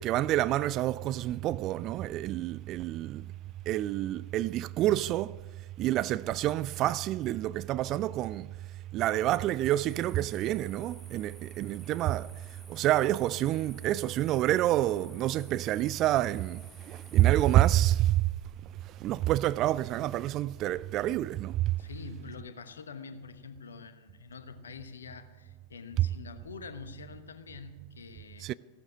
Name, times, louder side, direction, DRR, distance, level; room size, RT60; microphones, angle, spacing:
voice 1, 0.0-3.3 3.7-5.4 5.8-8.5 8.9-18.2 18.8-21.8 28.4-28.5, right 14 dB, 35° right, 0.3 m, -28 dB
sound 1, 9.6-17.8, right 1 dB, ahead, 0.7 m, -54 dB
voice 2, 21.8-28.5, left 5 dB, 70° left, 1.1 m, -46 dB
15.5 x 12.0 x 6.4 m
figure-of-eight pair, 90°, 0 cm